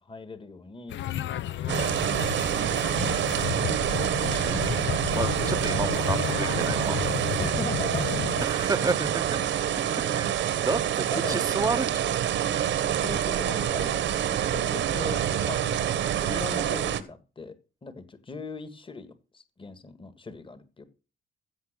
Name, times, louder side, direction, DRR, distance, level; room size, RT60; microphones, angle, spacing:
voice 1, 0.0-1.0 1.6-2.8 7.4-8.2 9.8-10.1 10.6-10.7 11.1-11.8 12.9-15.8 16.2-17.5 17.8-20.8, left 3 dB, 25° left, 1.7 m, -40 dB
sound 1, 0.9-8.5, left 12 dB, 70° left, 0.7 m, -32 dB
sound 2, 1.7-17.0, right 10 dB, 70° right, 1.2 m, -27 dB
voice 2, 3.3-4.8 5.1-7.3 8.4-9.4 9.9-10.3 10.7-11.9 12.5-12.7, right 4 dB, 20° right, 0.7 m, -32 dB
15.5 x 5.6 x 6.6 m
cardioid pair, 90°, 20 cm